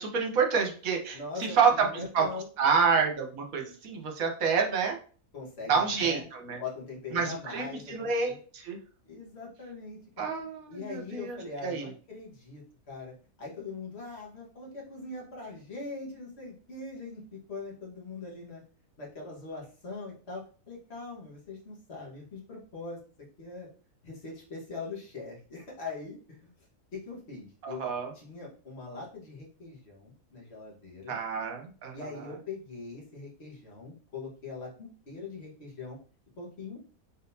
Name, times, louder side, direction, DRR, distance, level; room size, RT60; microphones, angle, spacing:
voice 1, 0.0-2.3 2.6-5.0 5.7-6.6 7.1-8.8 10.2-11.9 27.6-28.1 31.1-32.3, right 5 dB, 65° right, 2 dB, 1.3 m, -28 dB
voice 2, 1.1-2.5 5.3-6.3 6.6-8.4 9.0-10.3 10.7-18.6 19.0-23.0 23.4-23.7 24.0-26.5 26.9-27.9 28.1-31.2 31.9-36.0 36.4-36.9, left 3 dB, 45° left, -3 dB, 1.7 m, -42 dB
4.0 x 3.9 x 2.7 m, 0.39 s
omnidirectional pair, 1.6 m